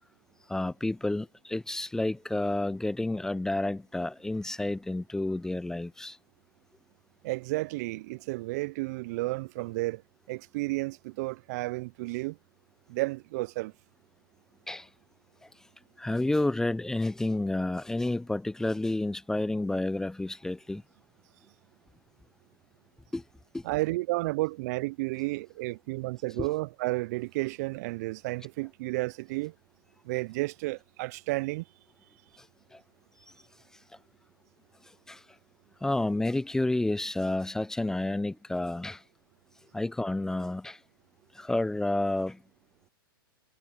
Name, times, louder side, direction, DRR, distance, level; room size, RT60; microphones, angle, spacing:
voice 1, 0.5-6.2 14.7-14.8 16.0-20.8 23.1-23.2 23.5-23.6 26.4-26.5 35.1-35.2 35.8-39.0 39.7-40.8 41.4-42.4, left 2 dB, 5° left, 0.7 m, -30 dB
voice 2, 7.2-10.0 10.3-12.4 12.9-13.7 23.6-29.5 30.1-31.6, right 22 dB, 45° right, 0.6 m, -32 dB
hypercardioid pair, 110°, 12 cm